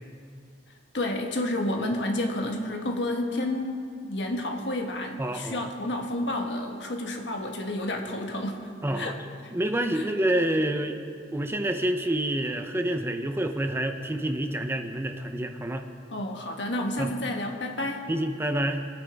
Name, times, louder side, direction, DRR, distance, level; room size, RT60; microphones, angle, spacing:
voice 1, 0.9-8.6 8.9-9.2 9.9-10.1 16.1-18.0, left 1 dB, 85° left, 2 dB, 1.4 m, -30 dB
voice 2, 5.2-5.6 8.8-9.2 9.5-11.0 11.3-15.9 17.0-17.1 18.1-18.9, right 1 dB, 15° right, 6 dB, 0.6 m, -28 dB
23.5 x 9.3 x 3.5 m, 2.3 s
head